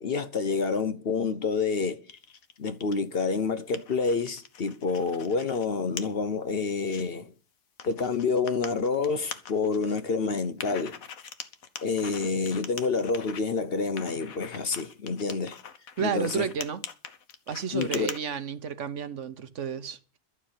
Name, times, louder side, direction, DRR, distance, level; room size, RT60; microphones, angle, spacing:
voice 1, 0.0-2.0 2.6-7.3 7.8-11.0 11.8-15.6 16.0-16.5 17.7-18.1, left 4 dB, 50° left, 1.0 m, -28 dB
sound 1, 2.1-3.0 3.4-5.6 6.0-6.1 6.6-7.0 7.8-10.0 10.6-13.4 14.0-18.2, left 7 dB, 80° left, 1.5 m, -42 dB
voice 2, 16.0-16.8 17.5-20.2, right 7 dB, 60° right, 1.2 m, -32 dB
12.0 x 6.6 x 9.5 m
omnidirectional pair, 1.4 m